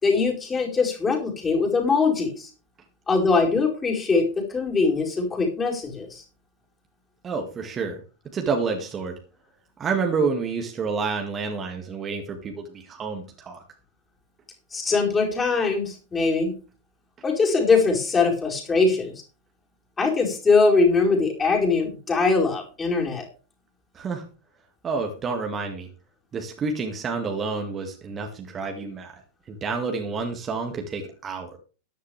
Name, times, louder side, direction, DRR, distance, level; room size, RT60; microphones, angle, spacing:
voice 1, 0.0-2.5 3.1-6.2 14.7-16.5 17.2-19.1 20.0-23.3, left 4 dB, 20° left, 0 dB, 4.9 m, -22 dB
voice 2, 7.2-8.0 8.3-9.1 9.8-13.6 23.9-24.2 24.8-25.9 26.3-29.2 29.5-31.6, right 4 dB, 25° right, 3 dB, 2.1 m, -29 dB
13.5 x 11.0 x 3.4 m, 0.35 s
figure-of-eight pair, 90°, 0 cm